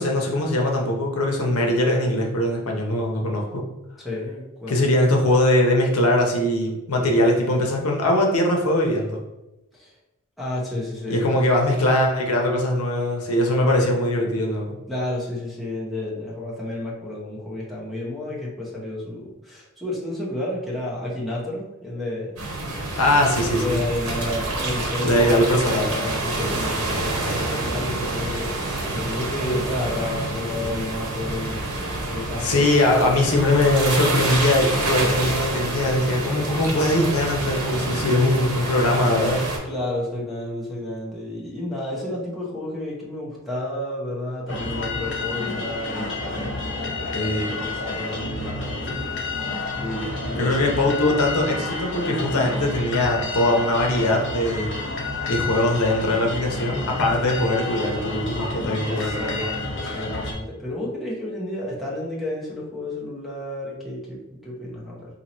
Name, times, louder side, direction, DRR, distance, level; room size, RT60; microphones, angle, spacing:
voice 1, 0.0-3.6 4.7-9.2 11.1-14.8 23.0-23.8 25.0-26.0 32.4-39.4 47.1-47.5 50.4-54.7 55.3-59.4, left 1 dB, 90° left, 1 dB, 0.7 m, -21 dB
voice 2, 4.0-4.8 9.7-9.9 10.4-11.3 14.9-22.7 23.2-31.7 32.0-32.9 39.6-50.8 58.9-65.2, left 1 dB, ahead, -5 dB, 0.8 m, -31 dB
sound 1, 22.4-39.6, right 2 dB, 90° right, 1.0 m, -27 dB
sound 2, 44.5-60.3, left 3 dB, 55° left, 0.7 m, -30 dB
2.9 x 2.6 x 4.1 m, 0.97 s
head